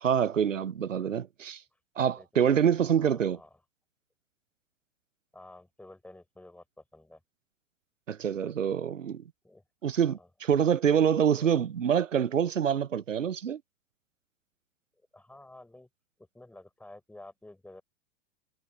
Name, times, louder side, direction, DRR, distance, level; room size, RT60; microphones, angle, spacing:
voice 1, 0.0-1.6 2.0-3.4 8.1-9.2 9.8-13.6, right 8 dB, 85° right, 0.6 m, -26 dB
voice 2, 2.2-2.5 2.8-3.6 5.3-7.2 9.4-9.6 10.0-10.3 11.3-11.6 15.1-15.9 16.2-17.8, left 1 dB, 5° left, 6.3 m, -51 dB
figure-of-eight pair, 100°, 38 cm